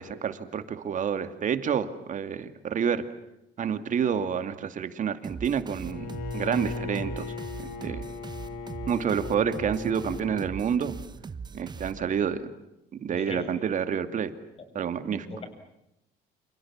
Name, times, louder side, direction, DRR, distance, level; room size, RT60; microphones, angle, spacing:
voice 1, 0.0-3.0 3.6-7.3 7.6-8.1 8.9-11.0 11.5-12.5 13.0-14.3 14.7-15.3, right 7 dB, 50° right, 9 dB, 2.5 m, -29 dB
sound 1, 5.2-12.4, right 5 dB, 25° right, 1.0 m, -41 dB
Bowed string instrument, 5.8-10.6, left 5 dB, 75° left, 5.0 m, -37 dB
voice 2, 13.1-13.5 14.6-15.5, left 2 dB, 35° left, 7 dB, 7.4 m, -40 dB
29.0 x 28.0 x 7.4 m, 0.85 s
cardioid pair, 110°, 17 cm